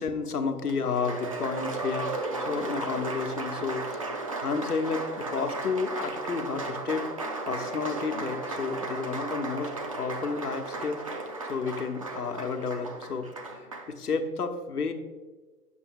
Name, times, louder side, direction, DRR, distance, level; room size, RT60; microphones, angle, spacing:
voice 1, 0.0-7.1 7.5-11.0 11.4-14.9, left 5 dB, 75° left, 6 dB, 1.0 m, -31 dB
Applause, 0.7-13.9, right 2 dB, 25° right, 0.4 m, -35 dB
8.9 x 6.9 x 3.5 m, 1.4 s
figure-of-eight pair, 120°, 46 cm